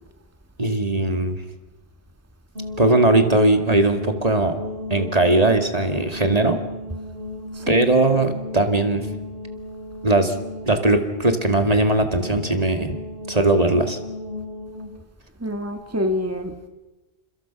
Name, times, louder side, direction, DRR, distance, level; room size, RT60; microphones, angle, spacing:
voice 1, 0.6-1.4 2.8-4.5 4.9-6.6 7.7-9.1 10.0-10.4 10.7-13.0 13.3-14.0, right 2 dB, 40° right, 6 dB, 2.3 m, -19 dB
sound 1, 2.6-14.9, left 1 dB, 60° right, 7.8 m, -35 dB
voice 2, 7.5-7.9 15.4-16.7, left 1 dB, 15° right, 6 dB, 1.9 m, -27 dB
30.0 x 27.5 x 6.0 m, 1.1 s
omnidirectional pair, 1.0 m